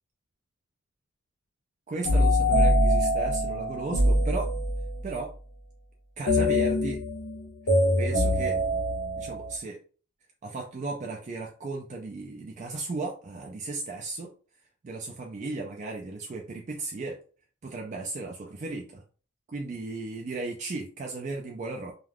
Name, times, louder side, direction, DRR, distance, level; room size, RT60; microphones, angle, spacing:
voice 1, 1.9-4.5 5.0-5.3 6.2-7.0 8.0-8.6 9.2-9.8 10.4-14.3 14.8-17.2 17.6-19.0 19.5-21.9, right 3 dB, 35° right, 0 dB, 0.4 m, -35 dB
sound 1, 2.0-5.0 6.3-9.5, left 1 dB, 50° left, 0.6 m, -24 dB
2.3 x 2.3 x 3.3 m, 0.39 s
head